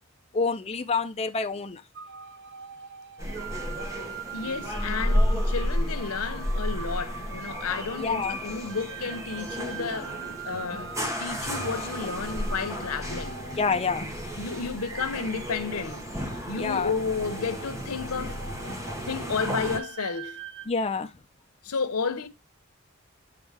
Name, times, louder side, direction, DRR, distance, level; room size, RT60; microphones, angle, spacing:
voice 1, 0.3-1.8 7.9-8.4 13.6-14.1 16.6-16.9 20.7-21.1, left 4 dB, 30° left, 0.5 m, -27 dB
sound 1, 1.9-20.7, right 6 dB, 55° right, 0.6 m, -43 dB
sound 2, 3.2-19.8, equal, 15° right, 1.1 m, -32 dB
sound 3, 3.2-19.9, right 2 dB, 75° right, 2.1 m, -55 dB
voice 2, 4.3-10.9 11.2-13.4 14.4-16.1 16.5-20.4 21.6-22.3, left 5 dB, 90° left, 0.9 m, -32 dB
7.8 x 4.0 x 3.4 m
head